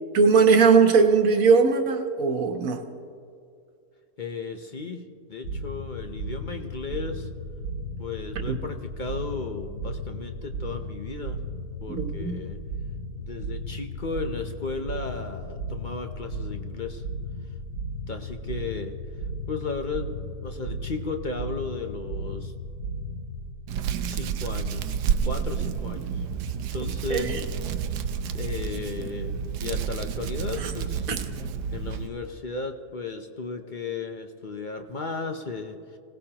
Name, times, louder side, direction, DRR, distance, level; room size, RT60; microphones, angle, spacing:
voice 1, 0.1-2.8 8.5-8.6 11.9-12.4 26.8-27.4 30.6-30.7 31.1-31.2, right 5 dB, 60° right, 5 dB, 1.4 m, -20 dB
voice 2, 4.2-5.0 5.3-7.3 8.0-11.4 11.8-12.6 13.2-17.0 18.1-18.9 19.5-22.5 24.1-25.0 25.2-26.1 26.7-27.3 28.3-29.3 29.6-31.1 31.7-36.0, left 4 dB, 45° left, 5 dB, 0.6 m, -35 dB
sound 1, 5.4-23.5, right 1 dB, 75° left, 3.9 m, -35 dB
Hands, 23.7-32.1, right 7 dB, 90° right, 1.3 m, -30 dB
25.5 x 17.5 x 2.9 m, 2.4 s
omnidirectional pair, 1.7 m